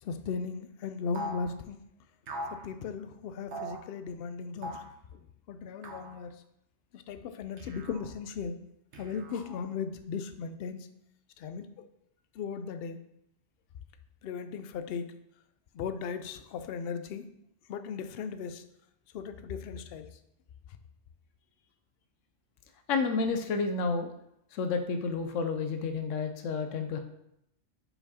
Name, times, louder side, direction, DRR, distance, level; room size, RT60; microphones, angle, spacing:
voice 1, 0.0-1.8 2.5-4.8 5.1-5.2 5.5-6.4 6.9-8.6 9.0-10.9 11.4-11.8 12.3-13.0 14.2-15.1 15.7-17.3 17.7-18.6 19.1-20.2 20.7-20.8, left 6 dB, 60° left, 10 dB, 0.7 m, -37 dB
sound 1, 1.1-1.5 2.3-2.6 3.5-3.8 4.6-4.9 5.8-6.2 7.6-8.1 8.9-9.6, right 1 dB, 70° right, 1.2 m, -40 dB
voice 2, 22.9-24.1 24.5-27.0, left 4 dB, 85° left, 7 dB, 1.0 m, -30 dB
5.5 x 4.6 x 4.2 m, 0.78 s
omnidirectional pair, 1.3 m